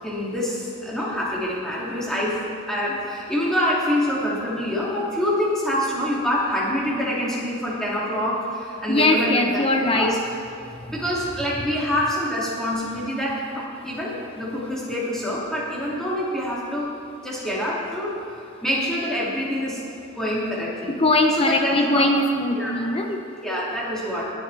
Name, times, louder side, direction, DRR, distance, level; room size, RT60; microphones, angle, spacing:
voice 1, 0.0-2.4 2.7-9.6 9.9-10.2 10.9-16.9 17.2-18.2 18.6-19.8 20.2-21.0 21.4-22.1 22.5-23.1 23.4-24.3, equal, ahead, -7 dB, 2.6 m, -26 dB
voice 2, 8.9-10.2 20.9-23.2, left 2 dB, 25° left, 4 dB, 0.8 m, -21 dB
22.5 x 8.2 x 3.5 m, 2.8 s
head